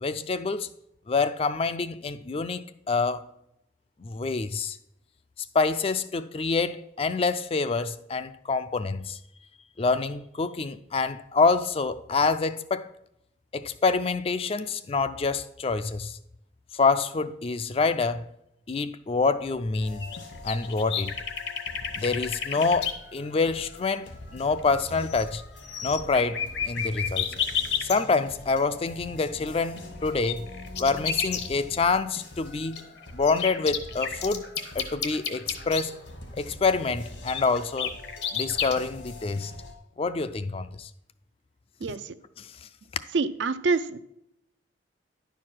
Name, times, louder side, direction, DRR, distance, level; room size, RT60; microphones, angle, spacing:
voice 1, 0.0-0.7 1.1-3.2 4.0-4.8 5.5-9.2 9.8-12.9 13.5-16.2 16.7-18.3 18.7-20.1 20.4-21.2 22.0-25.4 25.8-27.3 27.8-30.5 30.8-32.8 33.1-34.5 34.7-35.9 36.3-38.0 38.3-39.5 40.0-40.9 42.4-42.7, left 4 dB, 30° left, 0.3 m, -26 dB
sound 1, 19.8-39.7, left 2 dB, 85° left, 2.2 m, -44 dB
sound 2, 20.0-22.9 24.6-24.7 24.9-25.4 25.6-28.0 29.8-31.5 32.7-35.8 37.3-38.7, left 8 dB, 60° left, 0.8 m, -30 dB
voice 2, 41.8-42.1 43.1-44.0, right 4 dB, 70° right, 0.5 m, -26 dB
10.5 x 4.7 x 5.9 m
head